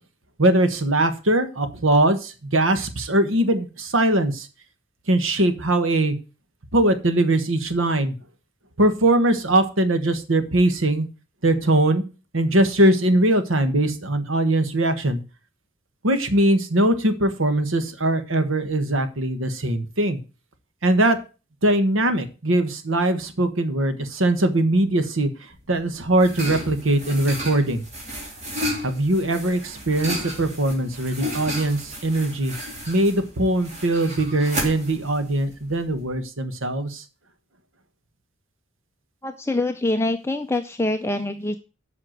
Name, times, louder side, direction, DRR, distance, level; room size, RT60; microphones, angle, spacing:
voice 1, 0.4-4.5 5.1-6.1 6.7-8.1 8.8-11.1 11.4-12.0 12.3-15.2 16.0-20.2 20.8-21.2 21.6-27.8 28.8-32.5 32.9-37.0, right 1 dB, 80° right, 9 dB, 1.4 m, -21 dB
sound 1, 25.6-36.2, equal, 35° right, 3.1 m, -33 dB
voice 2, 39.2-41.5, left 2 dB, 15° left, 6 dB, 0.5 m, -25 dB
7.9 x 5.9 x 7.8 m, 0.33 s
head